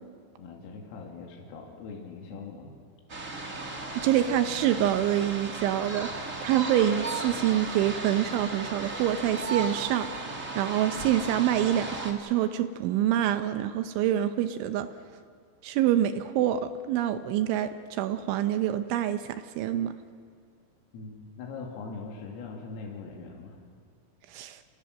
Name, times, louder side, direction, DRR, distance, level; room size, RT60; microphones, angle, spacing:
voice 1, 0.4-2.8 20.9-23.6, left 4 dB, 80° left, 0 dB, 5.2 m, -41 dB
sound 1, 3.1-12.1, right 3 dB, 55° right, 0.8 m, -36 dB
voice 2, 3.6-6.1 6.4-14.9 15.6-19.9 24.3-24.6, right 11 dB, 80° right, 9 dB, 3.0 m, -26 dB
29.5 x 28.5 x 6.6 m, 2.1 s
omnidirectional pair, 6.0 m